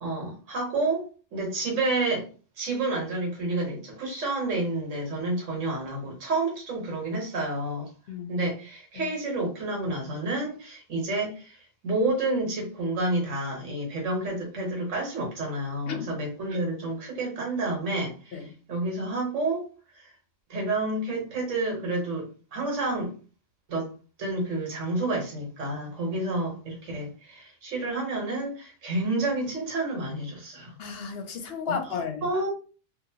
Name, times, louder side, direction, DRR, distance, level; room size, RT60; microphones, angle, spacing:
voice 1, 0.0-1.1 1.3-2.3 2.6-7.9 8.3-19.7 19.9-20.1 20.5-23.1 23.7-23.9 24.2-30.7 31.7-31.8 32.2-32.5, right 2 dB, 75° right, 1.5 m, -29 dB
voice 2, 30.8-32.3, left 6 dB, 60° left, 0.8 m, -33 dB
2.8 x 2.6 x 2.7 m
omnidirectional pair, 1.3 m